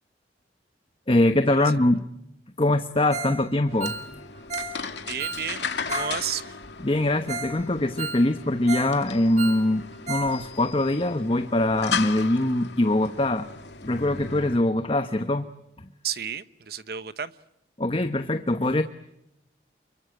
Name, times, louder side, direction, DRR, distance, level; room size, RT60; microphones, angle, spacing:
voice 1, 1.1-2.0 2.6-4.0 6.8-13.5 13.8-15.5 17.8-18.8, left 1 dB, 30° left, 1.0 m, -23 dB
Ringtone, 3.1-3.4 3.7-6.2 6.4-6.5 7.0-7.1 7.3-7.6 7.8-9.0 9.2-10.4 10.6-10.7 11.2-11.3, right 3 dB, 40° right, 2.7 m, -34 dB
sound 1, 3.7-14.6, left 5 dB, 70° left, 2.3 m, -36 dB
voice 2, 5.1-6.6 16.0-17.3, right 8 dB, 55° right, 1.1 m, -32 dB
29.0 x 23.0 x 7.8 m
head